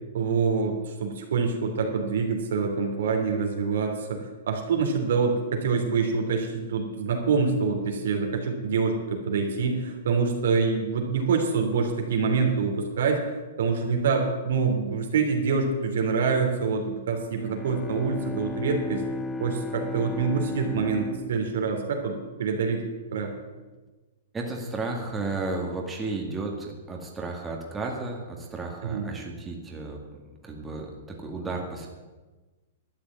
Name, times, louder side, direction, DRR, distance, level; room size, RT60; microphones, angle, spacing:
voice 1, 0.1-19.0 19.4-22.8 23.1-23.3 28.8-29.1, right 5 dB, 75° right, 2 dB, 3.0 m, -26 dB
Bowed string instrument, 17.3-22.9, left 2 dB, 10° left, 0.8 m, -35 dB
voice 2, 24.3-30.9 31.2-31.9, right 3 dB, 10° right, 0 dB, 1.9 m, -33 dB
12.0 x 6.7 x 9.5 m, 1.2 s
hypercardioid pair, 140°, 0 cm